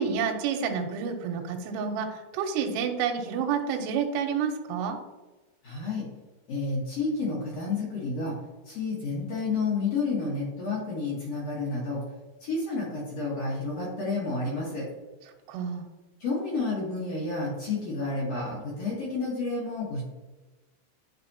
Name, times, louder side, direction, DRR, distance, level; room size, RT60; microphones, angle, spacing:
voice 1, 0.0-5.0 15.5-15.8, right 6 dB, 85° right, 3 dB, 2.6 m, -29 dB
voice 2, 5.6-6.0 6.5-8.3 8.7-12.0 12.4-14.9 16.2-20.0, left 3 dB, 75° left, -6 dB, 1.5 m, -30 dB
10.5 x 4.1 x 2.8 m, 1.2 s
omnidirectional pair, 5.3 m